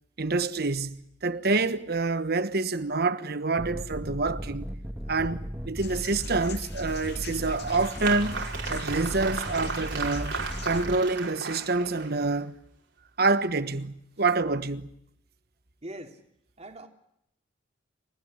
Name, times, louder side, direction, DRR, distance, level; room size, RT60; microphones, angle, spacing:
voice 1, 0.2-4.7 5.1-8.4 8.7-10.4 10.6-12.6 13.2-14.9, right 3 dB, 55° right, 1.3 m, -27 dB
sound 1, 3.6-11.0, equal, 10° right, 1.8 m, -36 dB
sound 2, 5.8-10.8, left 9 dB, 60° left, 2.4 m, -46 dB
Applause, 7.1-12.4, right 5 dB, 75° right, 5.3 m, -35 dB
voice 2, 15.8-16.2 16.6-16.9, right 1 dB, 35° right, 2.9 m, -41 dB
30.0 x 15.5 x 9.9 m
head